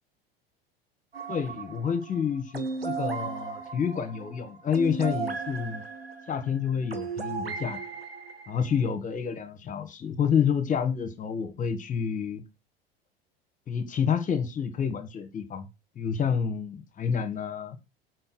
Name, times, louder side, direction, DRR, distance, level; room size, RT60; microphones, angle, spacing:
sound 1, 1.1-8.9, right 5 dB, 85° right, 1.1 m, -36 dB
voice 1, 1.3-5.8 6.3-7.8 8.5-12.4 13.7-15.6 16.0-17.8, left 7 dB, 25° left, 1.8 m, -29 dB
7.6 x 4.7 x 6.2 m
figure-of-eight pair, 75°, 29 cm